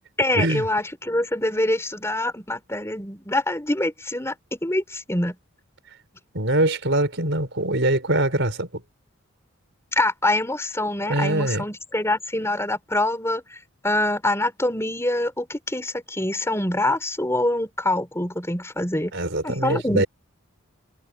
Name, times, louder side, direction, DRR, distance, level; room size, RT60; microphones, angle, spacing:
voice 1, 0.2-5.4 9.9-19.1 19.4-20.0, left 1 dB, 10° left, 4.4 m, -25 dB
voice 2, 6.3-8.8 11.1-11.7 19.1-20.1, right 1 dB, 55° right, 4.7 m, -23 dB
head